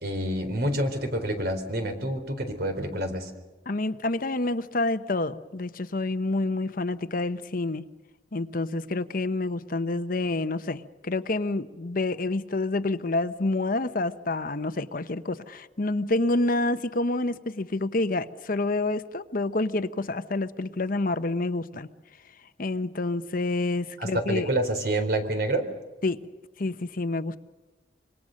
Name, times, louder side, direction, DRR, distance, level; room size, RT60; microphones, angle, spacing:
voice 1, 0.0-3.3 24.0-25.6, right 1 dB, 60° right, 4.0 m, -28 dB
voice 2, 3.7-7.8 8.3-21.9 22.6-24.5 26.0-26.2 26.6-27.4, left 2 dB, 55° left, 0.9 m, -28 dB
26.0 x 24.0 x 6.5 m
head